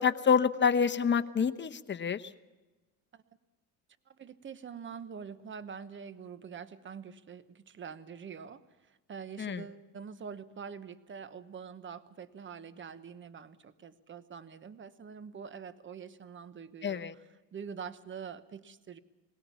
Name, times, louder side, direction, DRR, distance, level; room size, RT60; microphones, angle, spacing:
voice 1, 0.0-2.3 9.4-9.6 16.8-17.1, left 6 dB, 30° left, 9 dB, 1.0 m, -27 dB
voice 2, 4.1-17.2 17.5-19.0, right 6 dB, 35° right, 14 dB, 1.1 m, -45 dB
21.0 x 17.5 x 7.1 m, 1.2 s
supercardioid pair, 90°, 36 cm